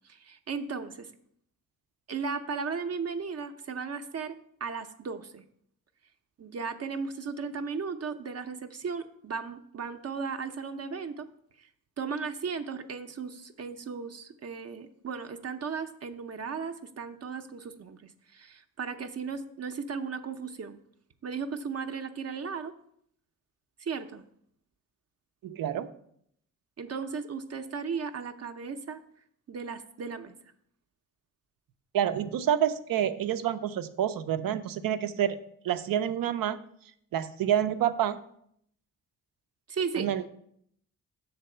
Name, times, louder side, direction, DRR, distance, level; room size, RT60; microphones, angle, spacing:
voice 1, 0.0-1.1 2.1-5.4 6.4-11.3 11.6-11.7 12.0-20.8 21.2-22.7 23.8-24.2 26.8-29.0 29.5-30.3 39.7-40.1, right 5 dB, 50° right, 7 dB, 0.6 m, -36 dB
voice 2, 25.4-25.9 31.9-35.4 35.6-36.6 37.1-38.2 39.9-40.2, right 10 dB, 90° right, 10 dB, 0.6 m, -28 dB
6.8 x 4.1 x 6.6 m, 0.69 s
cardioid pair, 85°, 33 cm